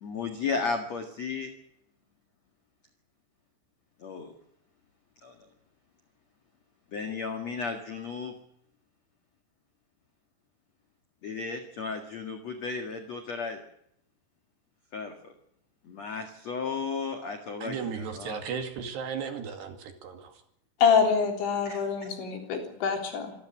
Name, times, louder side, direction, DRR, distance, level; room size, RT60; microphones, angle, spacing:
voice 1, 0.0-1.5 4.0-4.3 5.2-5.3 6.9-8.3 11.2-13.6 14.9-15.1 15.8-17.8 18.1-18.4 21.6-21.8, left 4 dB, 50° left, 5 dB, 2.2 m, -34 dB
voice 2, 17.6-20.4, right 6 dB, 65° right, 6 dB, 4.1 m, -35 dB
voice 3, 20.8-23.3, left 6 dB, 70° left, 3 dB, 5.9 m, -25 dB
27.0 x 13.5 x 8.9 m, 0.72 s
omnidirectional pair, 5.6 m